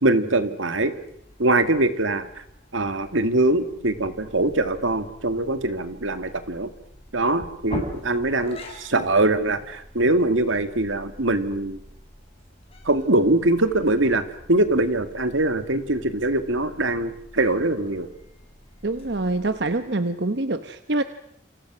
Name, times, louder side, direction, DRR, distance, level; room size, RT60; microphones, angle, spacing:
voice 1, 0.0-0.9 1.4-2.3 2.7-6.7 7.1-11.8 12.9-18.1, right 2 dB, 85° right, 10 dB, 2.1 m, -22 dB
sound 1, 0.7-19.9, equal, 30° left, 5.3 m, -44 dB
voice 2, 18.8-21.0, right 2 dB, 60° right, 10 dB, 1.0 m, -25 dB
29.0 x 27.0 x 6.2 m, 0.72 s
head